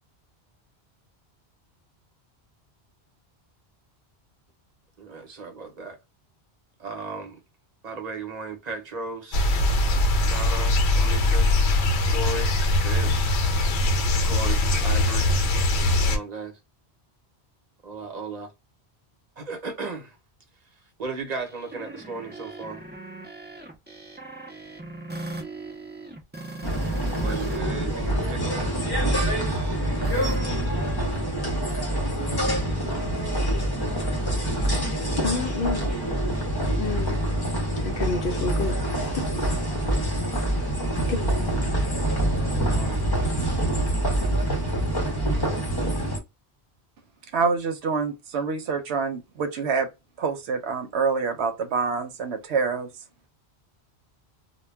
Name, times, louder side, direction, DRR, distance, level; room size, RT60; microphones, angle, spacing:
voice 1, 5.0-6.0 6.8-7.4 7.8-9.7 10.3-11.5 12.0-12.5 12.8-13.3 14.2-15.3 16.0-16.5 17.8-18.5 19.4-20.2 21.0-22.8 27.0-28.7 42.3-43.0, right 3 dB, 45° right, 0.9 m, -36 dB
sound 1, 9.3-16.2, left 2 dB, 85° left, 0.9 m, -21 dB
sound 2, 21.4-27.6 27.9-31.2, right 2 dB, 15° right, 0.4 m, -40 dB
sound 3, 26.6-46.2, right 1 dB, 25° left, 0.6 m, -25 dB
voice 2, 34.4-34.9 35.2-35.9 36.8-37.2 37.8-39.3 41.1-41.5, left 4 dB, 65° left, 0.7 m, -30 dB
voice 3, 47.3-49.9 50.2-52.9, right 5 dB, 85° right, 0.9 m, -26 dB
2.2 x 2.2 x 3.3 m
omnidirectional pair, 1.1 m